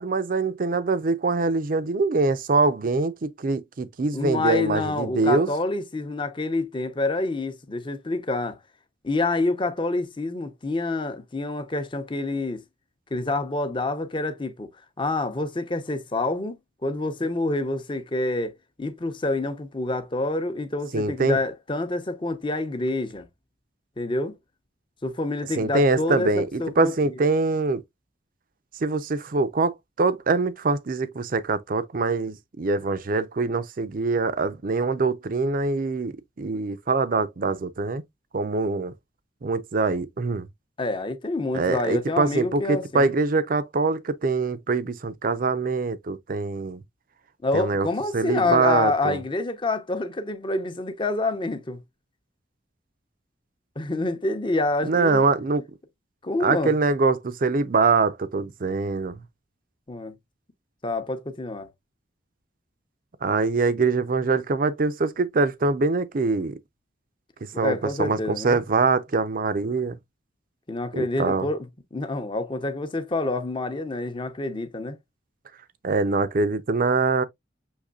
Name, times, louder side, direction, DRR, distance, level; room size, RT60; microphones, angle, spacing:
voice 1, 0.0-5.5 20.9-21.4 25.6-27.8 28.8-38.0 38.3-38.9 39.4-40.5 41.5-46.8 47.5-47.9 48.1-49.2 54.8-55.6 56.4-59.2 63.2-66.6 67.6-70.0 70.9-71.5 75.8-77.2, right 3 dB, 50° right, 0.5 m, -24 dB
voice 2, 4.1-8.6 9.0-12.6 13.1-14.7 15.0-18.5 18.8-23.3 24.0-24.4 25.0-26.9 40.8-43.1 47.4-51.8 53.8-55.3 56.2-56.7 59.9-60.1 60.8-61.7 67.5-68.6 70.7-75.0, left 2 dB, 25° left, 0.7 m, -27 dB
6.4 x 3.1 x 2.3 m
head